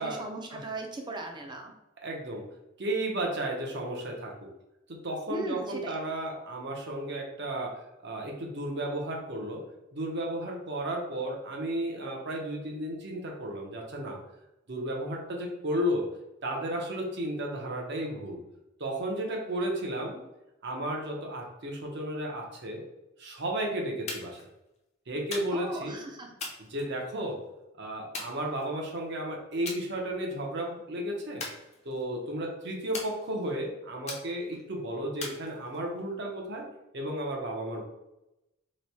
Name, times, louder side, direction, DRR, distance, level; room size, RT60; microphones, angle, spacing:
voice 1, 0.0-1.7 5.3-6.0 25.5-26.3, right 2 dB, 25° right, 2 dB, 0.5 m, -37 dB
voice 2, 2.0-2.4 2.8-4.3 4.9-9.6 9.9-14.2 14.7-16.1 16.4-18.4 18.8-20.2 20.6-22.8 23.2-24.4 25.1-26.0 26.6-27.4 27.8-31.4 31.8-36.6 36.9-37.8, right 1 dB, 60° right, 0 dB, 0.8 m, -33 dB
sound 1, 24.1-24.5 25.3-25.8 26.4-27.3 28.1-29.0 29.7-29.9 30.3-30.6 31.4-32.2 32.9-33.6 34.1-34.6 35.2-36.0, left 3 dB, 35° left, 0.6 m, -41 dB
3.1 x 2.2 x 4.1 m, 0.92 s
head